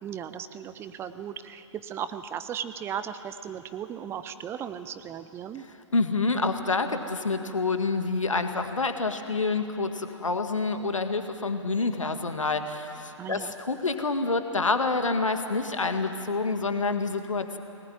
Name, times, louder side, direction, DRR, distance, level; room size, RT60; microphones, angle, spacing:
voice 1, 0.0-5.7 13.2-13.5, right 8 dB, 15° right, 12 dB, 0.8 m, -36 dB
voice 2, 5.9-17.6, left 3 dB, 75° left, 7 dB, 1.9 m, -27 dB
23.0 x 19.5 x 9.3 m, 2.8 s
figure-of-eight pair, 120°, 17 cm